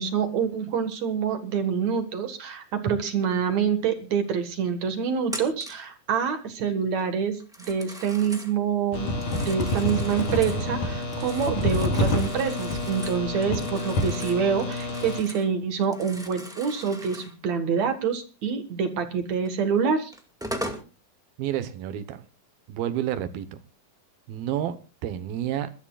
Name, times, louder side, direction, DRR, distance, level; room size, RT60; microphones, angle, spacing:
voice 1, 0.0-20.1, right 7 dB, 55° right, 2.6 m, -26 dB
Telephone, 5.3-5.9 7.4-8.5 9.1-10.6 11.0-15.5 15.8-17.3 19.4-19.5 20.1-20.9, equal, ahead, 1.0 m, -40 dB
sound 1, 8.9-15.2, left 2 dB, 60° left, 5.3 m, -28 dB
voice 2, 21.4-22.2 22.7-23.6 24.3-25.7, right 11 dB, 85° right, 3.0 m, -30 dB
27.5 x 13.0 x 2.4 m
omnidirectional pair, 4.1 m